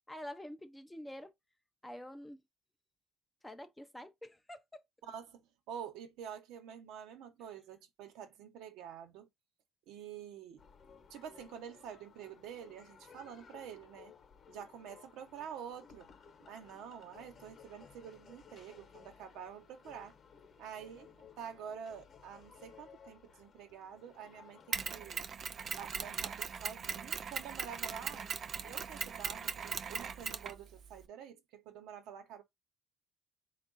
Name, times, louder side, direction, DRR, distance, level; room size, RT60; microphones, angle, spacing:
voice 1, 0.1-1.3 1.8-2.4 3.4-4.8 28.0-28.8, left 1 dB, 5° left, 0.5 m, -48 dB
voice 2, 5.1-9.3 9.9-10.6 11.1-14.1 14.5-16.1 16.5-20.1 20.6-25.2 25.7-28.3 28.6-32.4, right 8 dB, 70° right, 1.0 m, -48 dB
sound 1, 10.6-25.2, left 6 dB, 35° left, 1.0 m, -58 dB
Mechanisms, 24.7-31.1, right 6 dB, 40° right, 0.5 m, -39 dB
3.6 x 2.5 x 3.9 m
cardioid pair, 130°, 0 cm